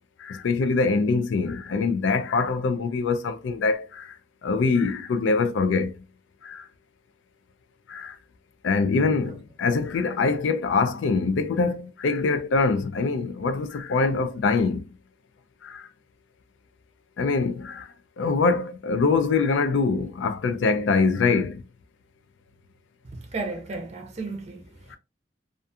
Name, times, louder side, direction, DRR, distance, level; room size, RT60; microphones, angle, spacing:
voice 1, 0.2-4.2 4.4-5.9 6.4-6.7 7.9-8.2 8.6-14.9 15.6-15.9 17.2-17.9 18.2-21.6 24.9-25.0, left 4 dB, 75° left, 0.4 m, -24 dB
voice 2, 23.1-24.6, right 3 dB, 35° right, 0.6 m, -33 dB
2.4 x 2.3 x 2.6 m
head